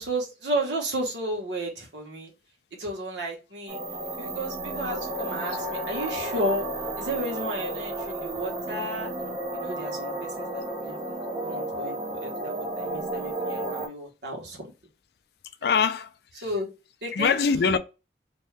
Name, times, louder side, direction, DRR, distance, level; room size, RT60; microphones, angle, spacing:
voice 1, 0.0-2.3 2.8-3.8 4.2-6.7 7.0-9.1 9.5-11.0 11.4-14.7 15.7-15.8 16.4-16.7 17.0-17.3, right 1 dB, 85° right, 1.1 m, -33 dB
sound 1, 3.7-13.9, right 1 dB, 20° right, 0.4 m, -32 dB
voice 2, 15.6-16.1 17.1-17.8, left 5 dB, 65° left, 0.3 m, -23 dB
2.7 x 2.3 x 3.2 m
head